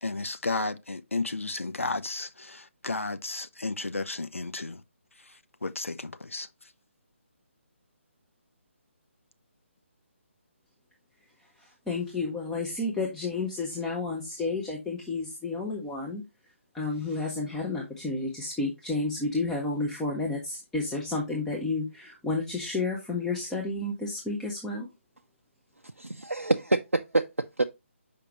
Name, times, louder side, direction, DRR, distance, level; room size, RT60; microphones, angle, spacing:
voice 1, 0.0-4.8 5.6-6.5, left 3 dB, 75° left, 0.6 m, -33 dB
voice 2, 11.9-16.2 16.7-24.9, left 3 dB, 5° left, 0.7 m, -31 dB
voice 3, 26.0-27.6, right 2 dB, 90° right, 0.4 m, -26 dB
6.6 x 5.1 x 3.0 m
figure-of-eight pair, 145°, 7 cm